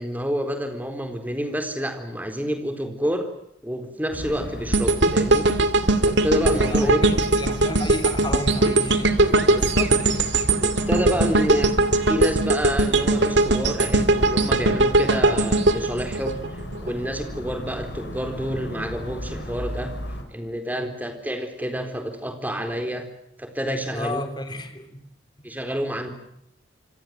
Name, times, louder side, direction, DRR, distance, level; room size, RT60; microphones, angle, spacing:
voice 1, 0.0-3.3 3.6-5.5 6.1-7.0 9.6-9.9 10.6-11.8 12.1-19.9 20.3-23.0 23.4-24.2 25.4-26.1, equal, 10° right, 4.1 m, -28 dB
sound 1, 4.1-20.2, equal, 60° left, 5.3 m, -36 dB
sound 2, 4.7-16.9 17.3-17.5, right 2 dB, 65° right, 2.5 m, -20 dB
voice 2, 6.5-9.7 10.0-10.1 23.9-25.0 25.4-25.5, left 1 dB, 20° left, 3.3 m, -33 dB
27.5 x 25.0 x 7.8 m
head